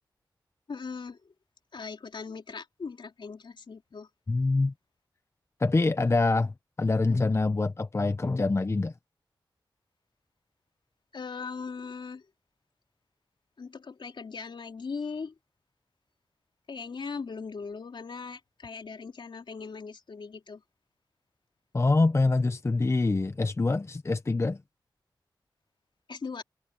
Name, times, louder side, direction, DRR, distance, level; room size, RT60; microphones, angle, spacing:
voice 1, 0.7-1.3 1.7-4.1 11.1-12.2 13.6-15.3 16.7-20.6 26.1-26.4, left 5 dB, 70° left, 3.9 m, -39 dB
voice 2, 4.3-4.7 5.6-8.9 21.7-24.6, left 3 dB, 30° left, 0.7 m, -25 dB
cardioid pair, 70°, 9 cm